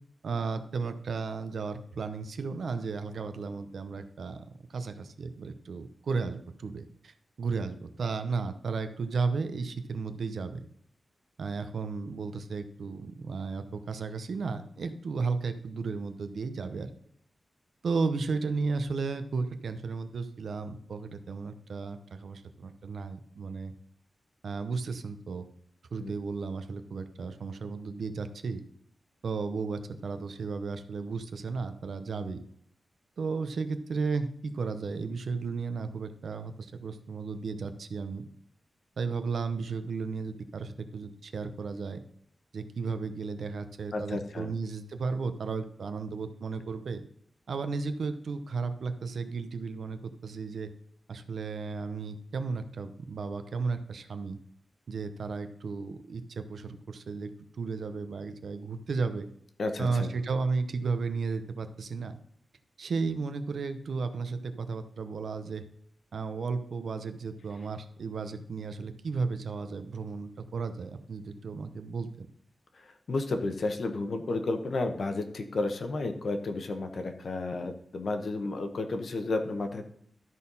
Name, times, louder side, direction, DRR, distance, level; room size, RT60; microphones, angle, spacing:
voice 1, 0.2-4.4 4.7-10.6 11.4-16.9 17.8-23.7 24.4-25.5 25.9-28.6 29.2-32.4 33.2-38.3 39.0-42.0 42.5-47.0 47.5-50.7 51.1-54.4 54.9-57.3 57.6-59.3 59.8-62.2 62.8-65.6 66.1-72.3, right 4 dB, 65° right, 9 dB, 0.8 m, -34 dB
voice 2, 43.9-44.5 59.6-60.1 72.7-79.9, left 2 dB, 55° left, 7 dB, 1.1 m, -32 dB
12.5 x 4.3 x 5.5 m, 0.68 s
wide cardioid pair, 170°, 0 cm